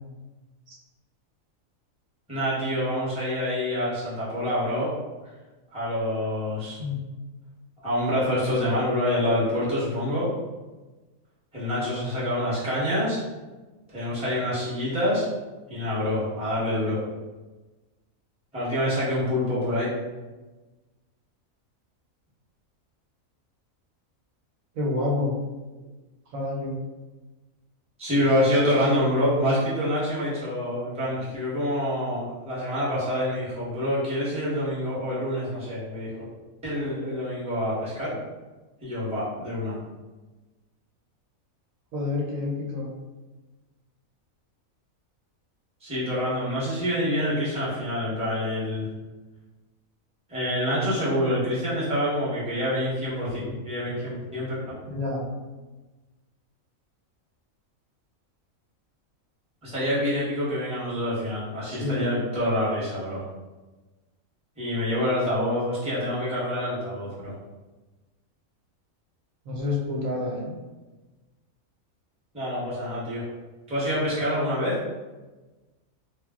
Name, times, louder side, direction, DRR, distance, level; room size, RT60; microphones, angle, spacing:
voice 1, 2.3-4.9 5.7-6.8 7.8-10.3 11.5-13.2 13.9-15.3 15.7-17.0 18.5-19.9 28.0-36.2 36.6-38.2 38.8-39.8 45.8-48.9 50.3-54.6 59.6-63.2 64.6-67.3 72.3-73.2 73.7-74.7, left 1 dB, 5° right, -9 dB, 0.7 m, -26 dB
voice 2, 24.8-25.3 26.3-26.8 41.9-42.9 54.9-55.3 61.7-62.1 69.5-70.5, left 2 dB, 75° right, -3 dB, 1.1 m, -28 dB
2.3 x 2.0 x 3.5 m, 1.2 s
omnidirectional pair, 1.5 m